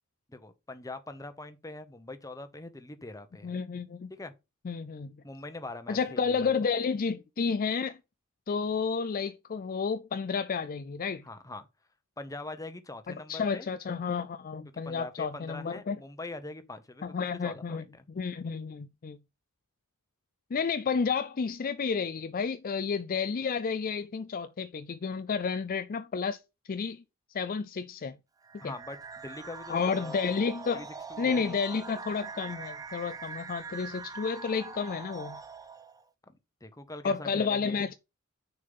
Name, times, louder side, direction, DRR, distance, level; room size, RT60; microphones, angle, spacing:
voice 1, 0.3-3.5 4.1-4.3 5.2-6.5 11.2-11.7 12.2-13.7 14.6-18.1 28.6-30.2 30.7-31.5 36.3-37.9, left 2 dB, 15° left, 0.9 m, -43 dB
voice 2, 3.4-4.1 4.6-5.2 5.9-8.0 8.5-11.2 13.1-16.0 17.0-19.2 20.5-26.4 26.7-27.0 27.3-28.2 28.6-28.7 29.7-30.9 31.2-35.4 37.0-37.9, left 5 dB, 40° left, 0.4 m, -31 dB
sound 1, 28.4-36.0, right 5 dB, 15° right, 0.6 m, -43 dB
6.6 x 5.5 x 5.4 m
head